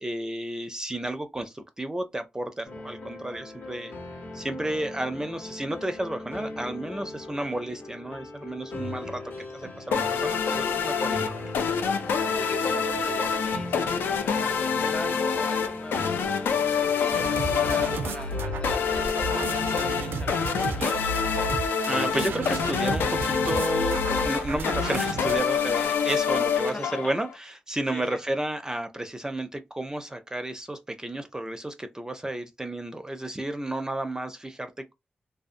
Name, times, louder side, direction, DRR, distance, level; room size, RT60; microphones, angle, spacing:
voice 1, 0.0-4.0 4.3-9.2 9.5-11.3 21.9-34.9, right 1 dB, 20° right, 0.4 m, -32 dB
sound 1, 2.6-19.4, left 2 dB, 70° left, 0.8 m, -39 dB
sound 2, 9.9-27.3, left 6 dB, 90° left, 0.4 m, -27 dB
voice 2, 12.1-21.0 26.7-27.1 27.9-28.2, left 1 dB, 30° left, 0.7 m, -41 dB
sound 3, 17.1-25.4, right 3 dB, 85° right, 0.4 m, -33 dB
2.5 x 2.2 x 2.4 m
cardioid pair, 50°, 4 cm